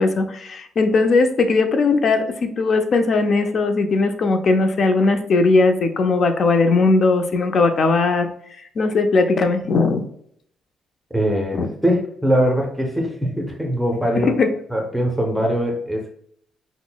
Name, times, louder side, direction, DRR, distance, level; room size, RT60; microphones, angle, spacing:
voice 1, 0.0-8.3 8.8-10.0 11.5-11.7 14.1-14.5, left 3 dB, 55° left, 7 dB, 0.5 m, -18 dB
voice 2, 11.1-14.3 14.7-16.1, equal, ahead, 1 dB, 0.6 m, -22 dB
5.6 x 2.0 x 2.2 m, 0.66 s
cardioid pair, 90°, 0 cm